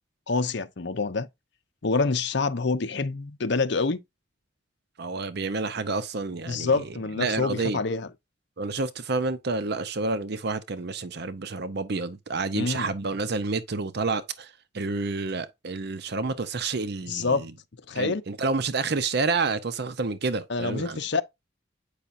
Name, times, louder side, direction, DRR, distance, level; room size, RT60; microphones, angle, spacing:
voice 1, 0.3-1.3 1.8-4.0 6.5-8.1 12.5-12.9 17.1-17.5 17.9-18.2 20.5-21.2, left 4 dB, 60° left, 0.8 m, -26 dB
voice 2, 5.0-7.8 8.6-17.5 18.0-21.0, right 3 dB, 55° right, 0.7 m, -29 dB
8.3 x 5.7 x 2.6 m
head